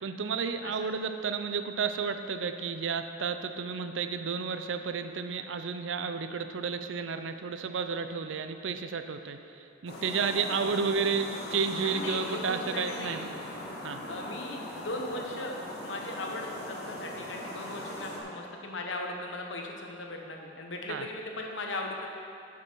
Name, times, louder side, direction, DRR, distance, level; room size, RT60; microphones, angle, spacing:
voice 1, 0.0-13.3 13.8-14.0 20.9-21.1, right 5 dB, 80° right, 9 dB, 0.5 m, -32 dB
voice 2, 0.6-0.9 11.8-13.2 14.1-15.6 15.8-22.1, left 2 dB, 80° left, 1 dB, 1.1 m, -38 dB
sound 1, 9.9-18.2, left 1 dB, 55° left, 1.5 m, -40 dB
8.6 x 6.0 x 6.1 m, 2.6 s
head